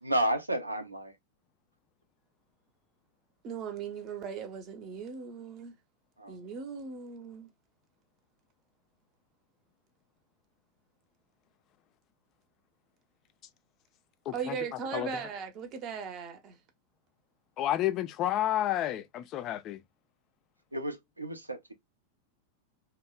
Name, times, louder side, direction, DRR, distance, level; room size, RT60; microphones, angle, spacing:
voice 1, 0.0-1.1 6.2-6.4 20.7-21.7, right 1 dB, 85° right, 0.5 m, -31 dB
voice 2, 3.4-5.8 6.3-7.5 14.3-16.6, right 6 dB, 35° right, 0.6 m, -38 dB
voice 3, 14.3-14.6 14.9-15.1 17.6-19.8, left 13 dB, 35° left, 0.3 m, -30 dB
2.8 x 2.0 x 2.3 m
figure-of-eight pair, 90°, 0 cm